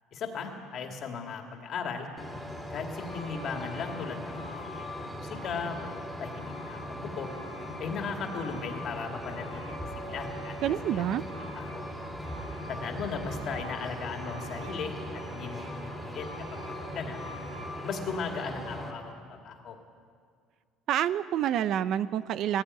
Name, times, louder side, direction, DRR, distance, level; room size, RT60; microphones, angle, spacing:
voice 1, 0.1-2.1 2.7-7.3 7.8-9.8 10.1-10.5 10.9-11.0 11.5-11.9 12.7-16.6 16.9-17.2 17.8-19.8, left 5 dB, 40° left, 3 dB, 2.5 m, -37 dB
Truck, 2.2-18.9, equal, ahead, 2.8 m, -39 dB
voice 2, 10.6-11.2 20.9-22.6, right 10 dB, 50° right, 15 dB, 0.5 m, -28 dB
18.0 x 15.5 x 10.0 m, 2.1 s
cardioid pair, 160°, 0 cm